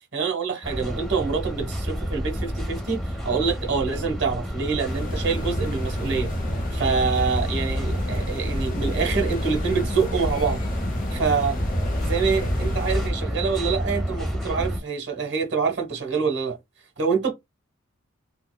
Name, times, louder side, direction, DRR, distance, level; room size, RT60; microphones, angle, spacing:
voice 1, 0.1-6.3 6.7-10.6 11.1-11.6 12.0-16.6 17.0-17.3, right 5 dB, 55° right, 1.0 m, -26 dB
sound 1, 0.6-14.8, equal, ahead, 0.8 m, -30 dB
sound 2, 4.8-13.1, left 1 dB, 40° left, 0.7 m, -29 dB
4.2 x 2.2 x 2.2 m
head